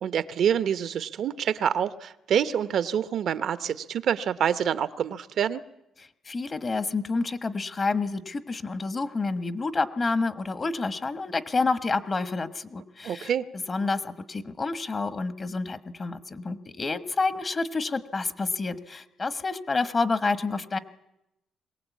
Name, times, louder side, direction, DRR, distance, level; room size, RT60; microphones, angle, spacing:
voice 1, 0.0-5.6 13.0-13.5, right 8 dB, 70° right, 13 dB, 0.8 m, -26 dB
voice 2, 6.0-13.3 13.7-20.8, left 3 dB, 35° left, 12 dB, 1.3 m, -29 dB
22.0 x 18.0 x 8.4 m, 0.88 s
cardioid pair, 80°, 0 cm